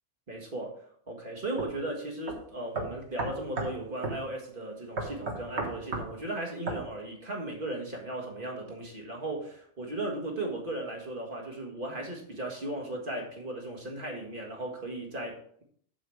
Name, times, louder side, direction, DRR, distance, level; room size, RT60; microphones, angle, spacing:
voice 1, 0.3-0.8 1.1-15.6, right 1 dB, 45° right, 0 dB, 1.9 m, -36 dB
sound 1, 1.6-1.7 2.3-2.4 2.7-3.8 4.0-4.2 5.0-6.1 6.7-6.8, right 3 dB, 60° right, 1.7 m, -33 dB
7.4 x 7.1 x 4.7 m, 0.62 s
omnidirectional pair, 1.3 m